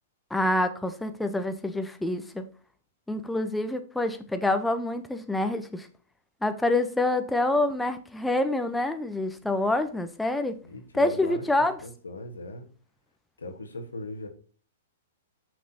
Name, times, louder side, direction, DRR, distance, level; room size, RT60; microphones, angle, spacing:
voice 1, 0.3-2.4 3.1-5.9 6.4-10.6 10.9-11.8, left 2 dB, 5° left, 0.7 m, -27 dB
voice 2, 10.6-12.7 13.4-14.3, left 2 dB, 85° left, 1.4 m, -39 dB
6.1 x 6.0 x 2.8 m
hypercardioid pair, 115°, 0 cm